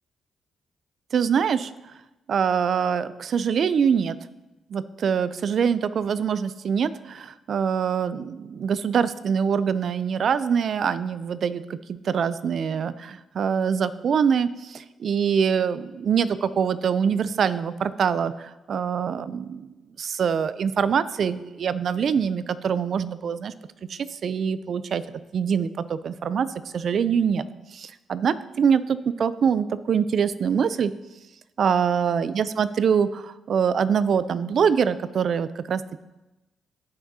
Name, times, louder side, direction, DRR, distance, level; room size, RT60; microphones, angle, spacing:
voice 1, 1.1-1.7 2.3-4.2 4.7-19.7 20.0-23.5 23.9-26.5 26.7-27.4 27.7-30.9 31.6-36.0, right 7 dB, 60° right, 15 dB, 0.4 m, -24 dB
14.0 x 5.8 x 2.8 m, 1.0 s
cardioid pair, 80°, 0 cm